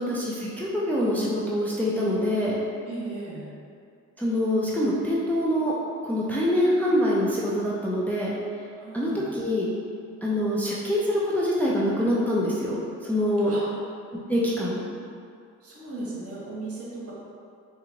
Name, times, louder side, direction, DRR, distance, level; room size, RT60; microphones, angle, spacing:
voice 1, 0.0-2.6 4.2-5.7 6.0-8.3 8.9-9.7 10.2-13.5 14.3-14.8, equal, 5° left, -6 dB, 0.5 m, -25 dB
voice 2, 2.8-3.5 8.8-9.3 13.4-13.6 15.6-17.1, right 2 dB, 50° right, -5 dB, 1.1 m, -36 dB
4.0 x 2.6 x 2.8 m, 2.3 s
cardioid pair, 90°, 30 cm